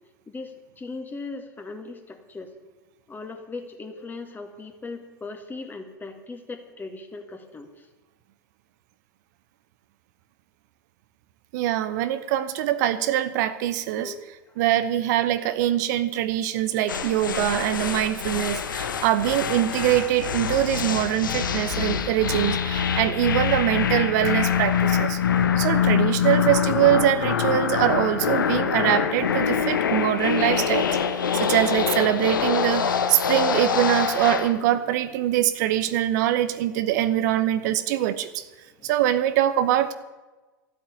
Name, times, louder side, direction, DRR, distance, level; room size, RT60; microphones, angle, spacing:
voice 1, 0.8-2.5 3.1-7.7 14.0-14.2 37.8-37.9 38.8-38.9, left 3 dB, 15° left, 5 dB, 2.3 m, -38 dB
voice 2, 11.5-14.1 14.6-25.2 25.6-38.4 38.8-39.9, right 12 dB, 60° right, 12 dB, 0.9 m, -23 dB
sound 1, 16.9-34.6, left 7 dB, 80° left, 1.2 m, -25 dB
13.0 x 8.0 x 9.8 m, 1.2 s
hypercardioid pair, 90°, 11 cm